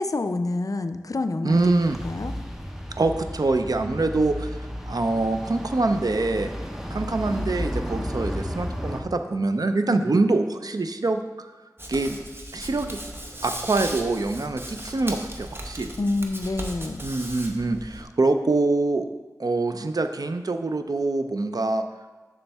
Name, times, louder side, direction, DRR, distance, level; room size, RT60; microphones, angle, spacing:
voice 1, 0.0-1.6 2.0-2.3 10.0-10.1 16.0-17.0, left 2 dB, 65° left, 9 dB, 0.4 m, -27 dB
voice 2, 1.4-2.0 3.0-4.6 4.9-6.5 6.9-11.5 11.9-12.2 12.5-13.0 13.4-15.9 17.0-19.1 19.4-21.8, right 2 dB, 80° right, 7 dB, 0.5 m, -24 dB
sound 1, 1.5-9.0, equal, 5° right, 0.8 m, -33 dB
Hands, 11.8-18.0, right 1 dB, 35° right, 0.9 m, -37 dB
7.0 x 6.3 x 3.4 m, 1.3 s
wide cardioid pair, 50°, 6 cm